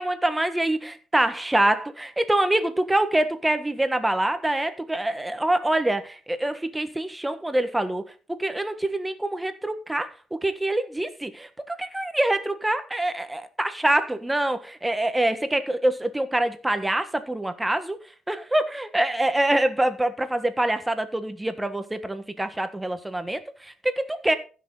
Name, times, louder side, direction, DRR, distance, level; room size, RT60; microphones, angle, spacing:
voice 1, 0.0-8.0 8.3-18.0 18.3-24.4, right 1 dB, 10° right, 1.4 m, -25 dB
15.5 x 6.3 x 4.0 m
cardioid pair, 90°, 0 cm